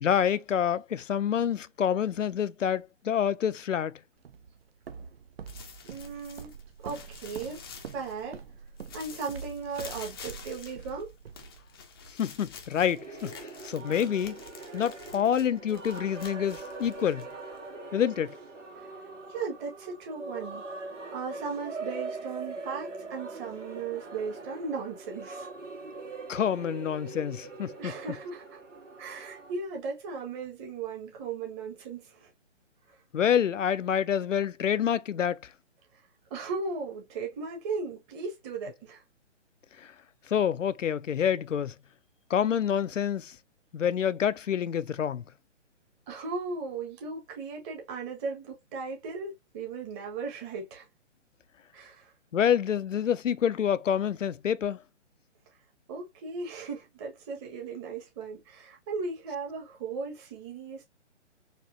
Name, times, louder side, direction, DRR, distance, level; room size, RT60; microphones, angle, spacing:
voice 1, 0.0-4.0 12.2-14.4 14.7-17.3 17.9-18.4 26.3-27.9 33.1-35.4 39.8-39.9 40.3-41.7 42.3-43.4 43.7-45.2 52.3-54.8, left 9 dB, 90° left, 0.5 m, -27 dB
Walk footsteps, 4.2-12.1, right 6 dB, 55° right, 0.7 m, -46 dB
sound 1, 5.5-8.5 8.8-17.8, left 6 dB, 20° left, 0.5 m, -48 dB
voice 2, 5.8-6.5 6.8-7.6 7.9-8.4 8.9-11.1 14.0-14.1 18.7-18.9 19.3-20.6 21.1-25.5 27.8-28.6 29.0-32.3 32.9-33.0 36.3-39.0 46.1-50.9 51.7-52.1 55.9-60.8, right 4 dB, 25° right, 1.5 m, -37 dB
sound 2, 12.9-29.5, right 3 dB, 85° right, 1.9 m, -42 dB
4.3 x 2.9 x 2.7 m
hypercardioid pair, 140°, 36 cm